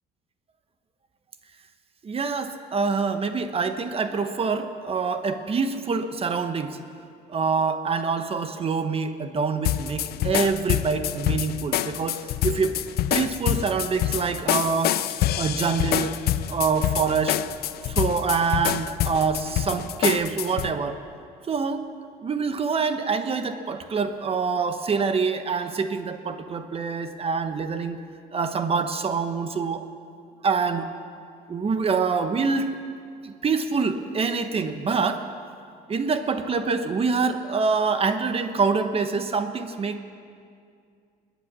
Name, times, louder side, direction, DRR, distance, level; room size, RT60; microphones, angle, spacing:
voice 1, 2.0-6.8 7.3-12.8 13.1-15.0 15.4-16.1 16.5-17.4 17.9-21.0 21.5-21.8 22.2-28.0 28.3-29.8 30.4-30.9 31.5-32.7 33.2-35.2 35.9-40.0, right 5 dB, 35° right, 9 dB, 1.1 m, -25 dB
sound 1, 9.6-20.7, left 12 dB, 70° left, 0.6 m, -26 dB
21.0 x 9.4 x 7.4 m, 2.3 s
cardioid pair, 110°, 17 cm